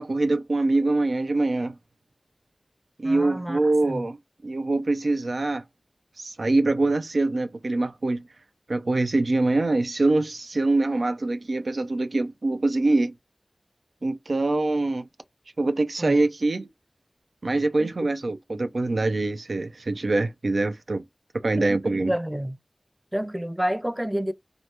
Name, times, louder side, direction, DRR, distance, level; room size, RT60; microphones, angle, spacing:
voice 1, 0.0-1.7 3.0-4.2 4.4-5.6 6.2-8.3 8.7-13.1 14.0-15.1 15.6-16.7 17.4-21.0 21.4-22.1, right 2 dB, 80° right, 0.4 m, -24 dB
voice 2, 3.0-3.6 3.9-4.1 16.0-16.2 17.8-17.9 21.6-22.6 23.1-24.3, equal, 10° right, 0.4 m, -29 dB
3.2 x 2.5 x 2.8 m
wide cardioid pair, 55°, 0 cm